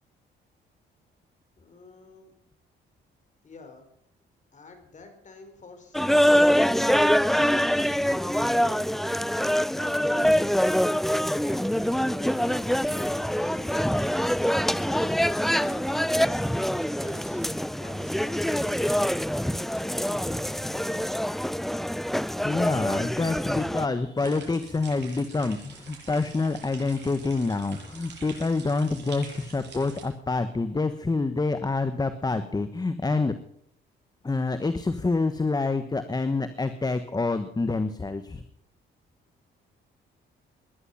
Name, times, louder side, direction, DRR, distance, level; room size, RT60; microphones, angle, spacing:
voice 1, 1.6-2.3 3.4-3.9 4.5-7.6 8.1-9.0 9.7-10.6 11.4-14.0 14.8-16.3 16.7-19.0 19.3-21.5, left 3 dB, 40° left, 6 dB, 4.8 m, -48 dB
sound 1, 5.9-23.9, equal, ahead, 0.5 m, -25 dB
sound 2, 12.5-21.2, left 4 dB, 75° left, 6.7 m, -56 dB
voice 2, 22.4-33.3 34.2-38.4, left 3 dB, 20° left, 11 dB, 1.2 m, -27 dB
sound 3, 24.2-30.0, right 5 dB, 60° right, 7.4 m, -46 dB
20.0 x 11.0 x 5.7 m, 0.69 s
cardioid pair, 90°, 20 cm